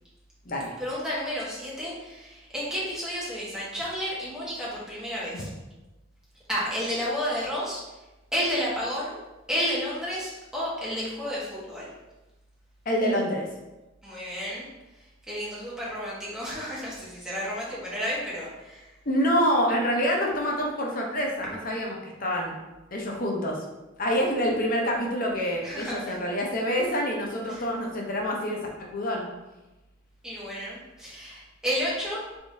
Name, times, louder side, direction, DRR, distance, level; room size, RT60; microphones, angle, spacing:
voice 1, 0.8-5.5 6.5-7.8 8.3-9.2 9.5-11.9 14.0-14.7 15.3-18.9 25.6-26.1 27.5-27.6 30.2-32.4, equal, 5° right, -8 dB, 1.2 m, -31 dB
voice 2, 12.9-13.5 19.1-22.6 22.9-23.6 24.0-29.2, equal, 45° left, -1 dB, 0.7 m, -27 dB
3.6 x 3.5 x 2.7 m, 1.0 s
head